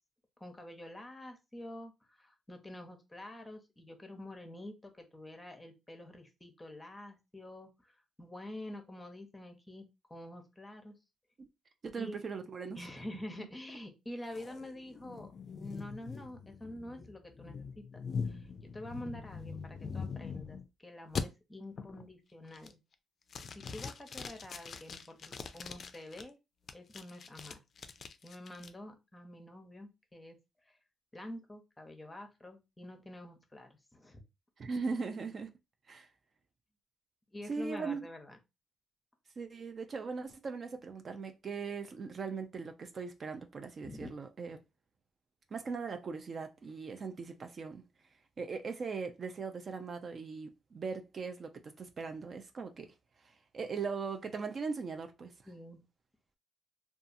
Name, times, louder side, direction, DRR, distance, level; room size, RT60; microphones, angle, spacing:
voice 1, 0.4-10.9 12.0-12.2 12.8-15.3 15.6-18.5 18.7-22.8 23.5-26.4 26.7-27.6 28.2-30.4 30.7-30.8 31.1-34.2 37.3-38.4 43.8-44.1 55.5-55.8, left 1 dB, 15° left, 0.7 m, -47 dB
voice 2, 11.8-12.8 34.6-35.5 35.9-36.1 37.5-38.1 39.4-44.6 45.5-47.8 48.4-52.9 53.5-55.3, right 5 dB, 45° right, 0.4 m, -39 dB
sound 1, 14.3-20.7 21.2-21.3 21.8-22.1 22.5-22.9 23.3-26.2 26.7-28.7, left 5 dB, 50° left, 0.3 m, -42 dB
2.7 x 2.3 x 2.5 m
cardioid pair, 90°, 0 cm